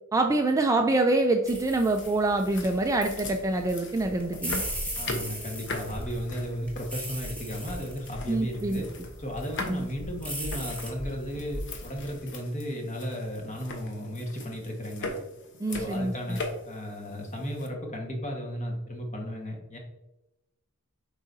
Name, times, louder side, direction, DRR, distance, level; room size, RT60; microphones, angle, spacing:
voice 1, 0.1-4.6 8.3-8.8 9.7-9.9 15.6-16.4, right 2 dB, 15° right, 4 dB, 0.3 m, -25 dB
sound 1, 1.5-12.2, equal, 5° left, 1.3 m, -38 dB
sound 2, 1.8-17.7, left 2 dB, 55° left, 0.9 m, -41 dB
voice 2, 5.0-8.9 9.2-15.1 15.7-19.8, equal, 35° left, 1 dB, 1.4 m, -35 dB
7.4 x 4.9 x 2.7 m, 0.96 s
head